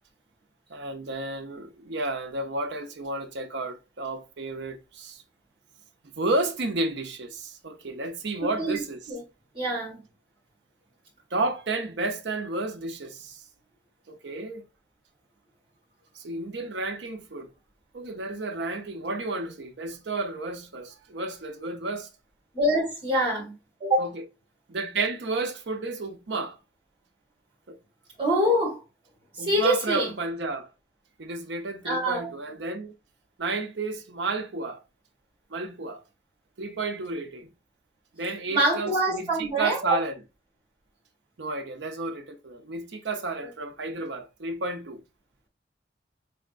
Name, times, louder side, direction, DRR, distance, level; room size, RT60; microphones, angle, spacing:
voice 1, 0.7-5.2 6.2-9.0 11.3-13.4 14.1-14.7 16.1-17.5 17.9-22.1 24.0-24.2 24.7-26.6 27.7-27.8 29.4-30.7 31.2-33.0 33.4-34.8 35.5-36.0 36.6-37.5 38.1-40.1 41.4-45.0, right 2 dB, 70° right, 0.7 m, -32 dB
voice 2, 8.4-8.8 9.1-9.2 9.5-10.0 22.5-23.5 23.8-24.1 28.2-28.8 29.4-30.1 31.8-32.3 38.5-40.0, right 1 dB, 25° right, 1.9 m, -25 dB
4.1 x 3.3 x 2.4 m
head